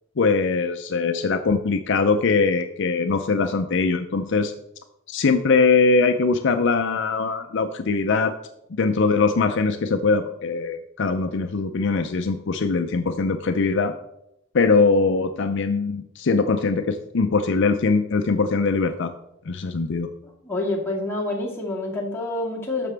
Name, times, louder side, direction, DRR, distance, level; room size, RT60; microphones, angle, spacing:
voice 1, 0.2-4.5 5.1-8.3 8.7-13.9 14.5-19.1 19.5-20.1, left 4 dB, 60° left, 7 dB, 0.5 m, -21 dB
voice 2, 20.4-22.9, left 2 dB, 10° left, -3 dB, 1.9 m, -27 dB
11.0 x 6.8 x 3.4 m, 0.81 s
head